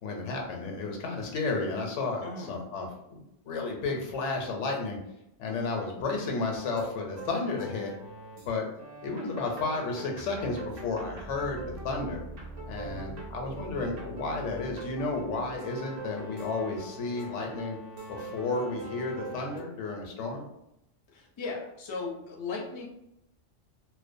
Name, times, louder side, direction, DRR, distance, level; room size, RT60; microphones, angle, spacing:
voice 1, 0.0-2.2 2.5-5.0 5.4-7.9 8.4-8.7 9.0-12.2 12.7-17.8 18.1-20.4, left 3 dB, 90° left, 1 dB, 0.9 m, -32 dB
voice 2, 2.2-2.5 12.8-13.3 21.1-22.9, left 4 dB, 45° left, -1 dB, 0.3 m, -37 dB
sound 1, 6.5-8.5 8.8-19.6, right 2 dB, 60° right, 0.7 m, -42 dB
2.4 x 2.1 x 2.5 m, 0.82 s
omnidirectional pair, 1.2 m